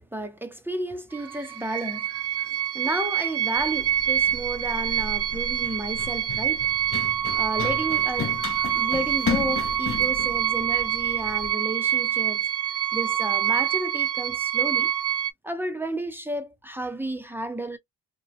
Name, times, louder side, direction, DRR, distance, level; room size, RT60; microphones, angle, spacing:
voice 1, 0.0-6.7 7.3-14.9 15.4-17.8, right 1 dB, 5° right, 0.8 m, -32 dB
sound 1, 1.1-15.3, right 10 dB, 55° right, 0.4 m, -26 dB
Run, 3.6-11.5, left 6 dB, 45° left, 0.7 m, -35 dB
2.9 x 2.4 x 2.7 m
cardioid pair, 90°, 30 cm